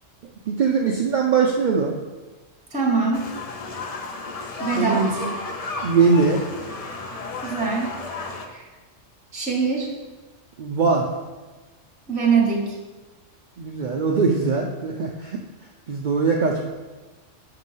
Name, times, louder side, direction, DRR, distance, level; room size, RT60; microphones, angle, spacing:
voice 1, 0.5-2.0 4.7-5.3 5.8-6.4 10.6-11.1 13.6-15.4 15.9-16.7, right 5 dB, 85° right, 0 dB, 0.4 m, -21 dB
voice 2, 2.7-3.3 4.6-5.1 7.4-7.9 8.5-8.6 9.3-9.9 12.1-12.8, right 4 dB, 10° right, -1 dB, 0.5 m, -22 dB
sound 1, 3.1-8.5, left 3 dB, 60° left, 0.3 m, -33 dB
6.1 x 2.9 x 5.4 m, 1.3 s
omnidirectional pair, 1.3 m